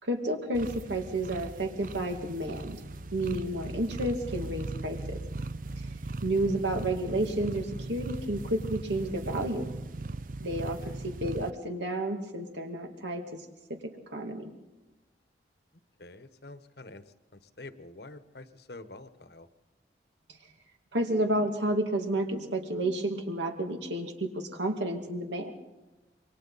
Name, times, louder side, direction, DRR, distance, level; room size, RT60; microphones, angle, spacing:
voice 1, 0.0-2.8 3.1-5.2 5.8-5.9 6.2-9.6 10.4-13.4 13.7-13.8 14.1-14.5 20.9-25.5, right 1 dB, 85° right, 4 dB, 2.5 m, -31 dB
sound 1, 0.5-11.5, right 2 dB, 45° right, 0.6 m, -38 dB
voice 2, 16.0-17.0 17.6-19.5, left 2 dB, 65° left, 11 dB, 1.2 m, -47 dB
27.5 x 23.5 x 4.1 m, 1.1 s
head